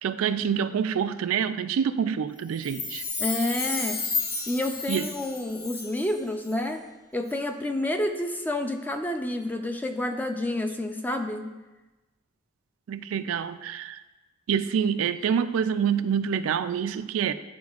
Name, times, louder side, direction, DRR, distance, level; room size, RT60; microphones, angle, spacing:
voice 1, 0.0-3.0 4.9-5.0 12.9-14.0 14.5-17.3, right 7 dB, 85° right, 11 dB, 0.3 m, -26 dB
Chime, 2.5-6.2 6.4-6.5, left 4 dB, 50° left, 0.8 m, -32 dB
voice 2, 3.2-4.0 4.5-6.9 7.1-11.5, left 1 dB, 10° left, 5 dB, 0.4 m, -29 dB
11.0 x 4.2 x 2.4 m, 1.1 s
head